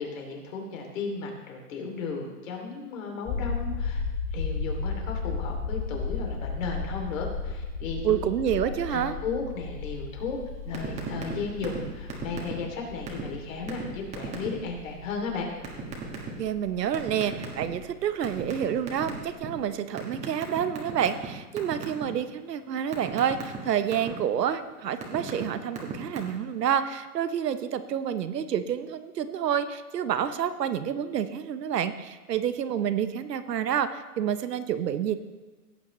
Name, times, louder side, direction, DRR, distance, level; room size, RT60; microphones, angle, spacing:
voice 1, 0.0-4.0 4.3-8.2 8.6-10.4 10.6-15.5, left 4 dB, 55° left, 1 dB, 2.9 m, -35 dB
sound 1, 3.3-19.3 19.6-19.7, left 4 dB, 15° left, 0.9 m, -35 dB
voice 2, 8.0-9.2 16.4-35.1, right 9 dB, 75° right, 11 dB, 1.0 m, -28 dB
sound 2, 10.7-11.3 11.6-11.8 12.1-12.7 13.1-13.2 13.7-13.8 14.1-14.5 15.6-16.3 16.9-17.8 18.2-19.5 20.0-21.3 21.6-22.0 22.4-24.1 24.7-25.4 25.7-26.2, right 7 dB, 15° right, 1.6 m, -35 dB
17.5 x 8.4 x 3.2 m, 1.2 s
hypercardioid pair, 145°, 49 cm